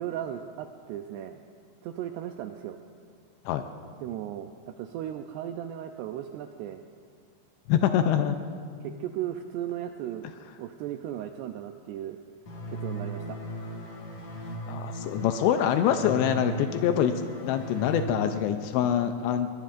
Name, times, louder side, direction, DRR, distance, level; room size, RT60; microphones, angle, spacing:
voice 1, 0.0-1.4 1.8-2.8 4.0-4.5 4.8-6.8 8.8-10.3 10.6-12.2 12.7-13.4, right 11 dB, 85° right, 6 dB, 2.4 m, -36 dB
voice 2, 7.7-8.4 14.7-17.1 17.4-19.5, left 9 dB, 80° left, 7 dB, 2.6 m, -25 dB
sound 1, 12.5-18.0, right 1 dB, 55° left, 2.1 m, -37 dB
22.0 x 20.5 x 2.5 m, 2.2 s
omnidirectional pair, 5.3 m